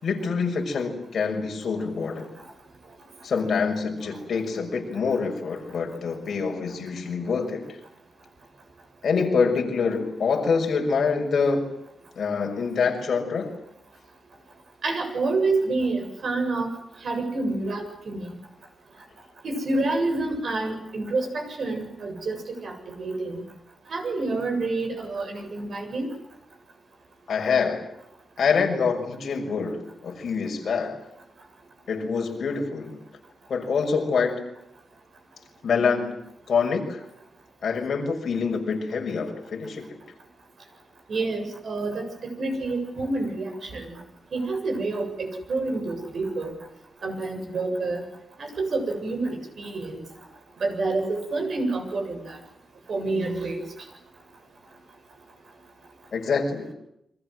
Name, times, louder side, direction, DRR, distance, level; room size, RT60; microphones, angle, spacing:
voice 1, 0.0-2.3 3.2-7.6 9.0-11.7 12.2-13.5 27.3-27.8 28.4-31.0 31.9-33.0 33.5-34.4 35.6-36.1 36.5-37.0 37.6-40.0 56.1-56.7, left 5 dB, 55° left, 3 dB, 6.1 m, -25 dB
voice 2, 14.8-16.7 17.0-18.4 19.4-23.4 23.9-26.1 41.1-42.0 42.4-44.0 44.3-46.5 47.0-48.0 48.4-50.0 50.6-52.4 52.9-53.6, right 3 dB, 55° right, 5 dB, 7.8 m, -28 dB
29.5 x 25.0 x 7.9 m, 0.80 s
wide cardioid pair, 175°, 0 cm